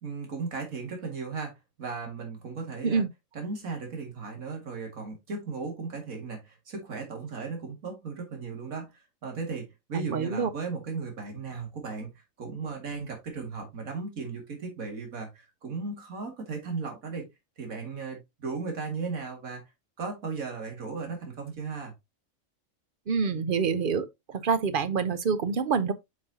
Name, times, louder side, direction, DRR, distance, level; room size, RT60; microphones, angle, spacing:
voice 1, 0.0-3.0 3.3-12.1 12.4-17.3 17.6-19.6 20.0-21.9, right 4 dB, 80° right, 2.4 m, -36 dB
voice 2, 9.9-10.5 23.1-25.9, right 5 dB, 50° right, 0.7 m, -27 dB
7.4 x 5.7 x 2.7 m
omnidirectional pair, 1.4 m